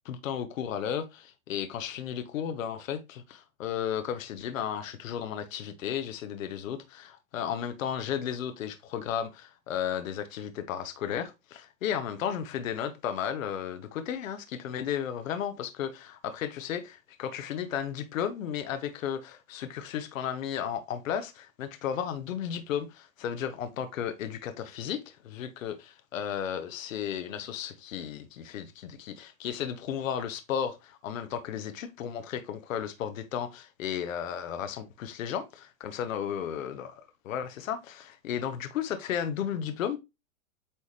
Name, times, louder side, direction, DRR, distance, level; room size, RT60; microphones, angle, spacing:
voice 1, 0.0-36.9 37.2-40.0, left 9 dB, 70° left, 1.1 m, -34 dB
8.6 x 3.5 x 3.2 m
hypercardioid pair, 125°, 41 cm